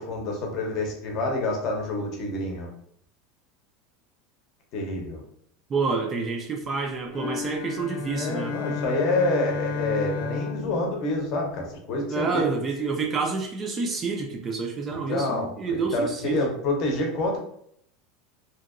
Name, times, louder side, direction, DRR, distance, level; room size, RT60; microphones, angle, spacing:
voice 1, 0.0-2.7 4.7-5.2 8.1-12.4 14.9-17.4, left 2 dB, 40° left, 1 dB, 0.7 m, -27 dB
voice 2, 5.7-8.5 12.1-16.4, right 4 dB, 20° right, 2 dB, 0.3 m, -28 dB
sound 1, 7.1-11.8, left 6 dB, 75° left, 0.5 m, -33 dB
2.8 x 2.7 x 2.5 m, 0.69 s
supercardioid pair, 165°, 0 cm